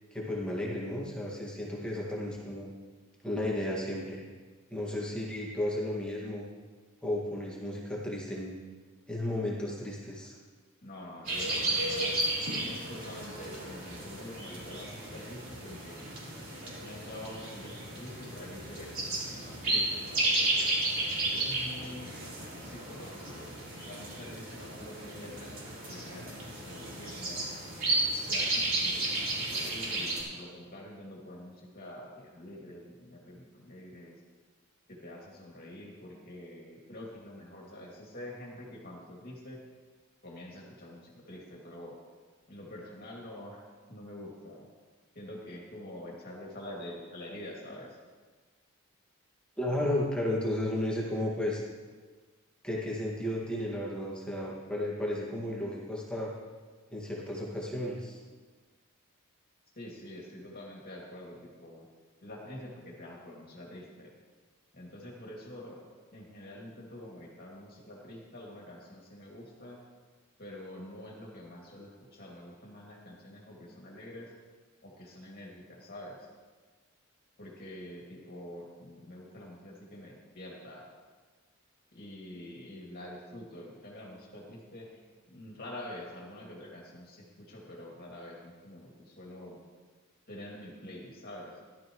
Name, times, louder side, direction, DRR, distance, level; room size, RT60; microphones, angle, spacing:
voice 1, 0.1-2.7 3.2-4.2 4.7-6.4 7.0-8.6 9.1-10.4 49.6-51.6 52.6-56.3 56.9-58.2, left 1 dB, 5° left, -5 dB, 2.0 m, -33 dB
voice 2, 10.8-12.1 12.7-16.0 16.6-20.7 21.3-22.1 22.6-25.6 25.9-27.5 28.3-34.2 34.9-39.6 40.2-42.0 42.5-43.6 43.9-44.7 45.1-48.0 59.8-61.9 62.2-64.1 64.7-65.8 66.1-69.8 70.4-74.3 74.8-76.3 77.4-80.9 81.9-84.9 85.3-89.6 90.3-91.6, left 1 dB, 45° left, -3 dB, 2.5 m, -46 dB
sound 1, 11.2-30.2, right 2 dB, 45° right, 4.3 m, -33 dB
16.0 x 12.5 x 3.1 m, 1.4 s
head